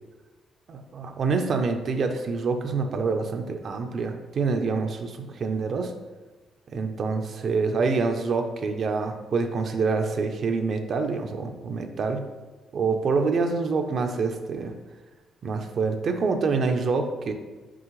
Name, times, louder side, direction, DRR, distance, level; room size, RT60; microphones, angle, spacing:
voice 1, 0.7-5.9 6.7-12.3 12.7-14.7 15.4-17.3, right 4 dB, 55° right, 5 dB, 0.6 m, -26 dB
6.1 x 4.9 x 3.2 m, 1.3 s
cardioid pair, 90°, 0 cm